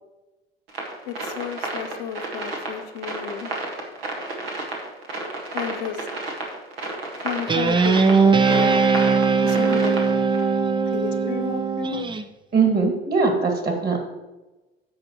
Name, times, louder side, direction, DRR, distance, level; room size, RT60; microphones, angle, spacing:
sound 1, 0.7-10.4, right 2 dB, 75° right, 1.7 m, -32 dB
voice 1, 1.1-3.5 5.5-6.1 7.2-8.9 9.4-9.9 10.9-12.1, left 9 dB, 60° left, 4 dB, 0.9 m, -32 dB
Guitar, 7.5-12.2, right 5 dB, 15° right, 0.5 m, -20 dB
voice 2, 12.5-14.0, right 4 dB, 30° right, 3 dB, 2.3 m, -21 dB
15.0 x 5.8 x 3.0 m, 1.1 s
figure-of-eight pair, 65°, 30 cm